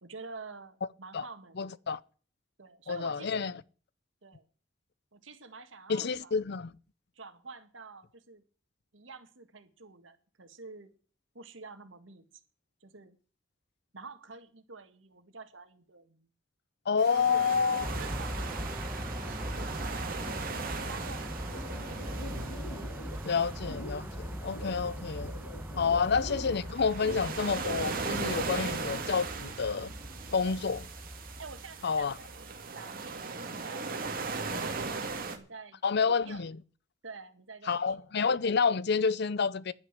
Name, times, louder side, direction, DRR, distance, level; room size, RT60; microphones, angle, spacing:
voice 1, 0.0-1.6 2.6-3.5 4.2-4.4 5.1-6.4 7.2-8.4 8.9-10.9 11.3-12.2 12.8-13.2 13.9-16.3 17.1-17.6 17.9-20.5 20.9-22.2 25.9-26.1 30.3-30.6 31.4-34.5 35.0-36.4 37.0-38.2, right 4 dB, 85° right, 1.8 m, -49 dB
voice 2, 1.6-2.0 2.9-3.5 5.9-6.7 16.9-17.9 23.2-25.3 25.8-29.9 30.3-30.8 31.8-32.1 35.8-36.6 37.7-39.7, left 5 dB, 60° left, 0.6 m, -29 dB
sound 1, 17.0-35.4, right 4 dB, 50° right, 2.1 m, -39 dB
sound 2, 17.8-32.7, equal, 10° right, 1.1 m, -40 dB
sound 3, 20.3-27.9, left 1 dB, 90° left, 6.9 m, -45 dB
11.0 x 9.4 x 7.4 m
head